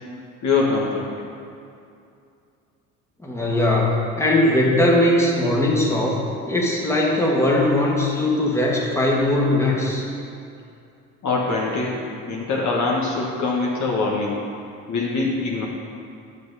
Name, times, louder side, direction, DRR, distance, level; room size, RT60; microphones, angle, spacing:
voice 1, 0.4-1.1 11.2-12.0 12.3-14.4 14.9-15.7, left 3 dB, 50° left, -3 dB, 1.4 m, -23 dB
voice 2, 3.2-6.2 6.5-10.0, left 1 dB, 5° left, -3 dB, 1.8 m, -20 dB
8.9 x 6.0 x 4.1 m, 2.5 s
hypercardioid pair, 65°, 38 cm